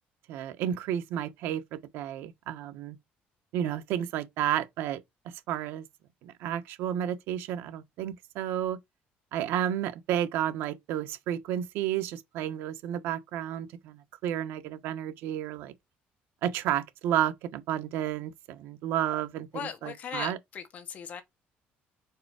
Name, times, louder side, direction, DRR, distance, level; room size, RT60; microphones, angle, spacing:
voice 1, 0.3-3.0 3.5-5.0 5.2-5.8 6.2-8.8 9.3-15.7 16.4-19.5 19.8-20.4, right 11 dB, 80° right, 1.0 m, -31 dB
voice 2, 19.5-21.2, left 7 dB, 40° left, 1.2 m, -38 dB
4.8 x 4.5 x 4.8 m
cardioid pair, 170°, 4 cm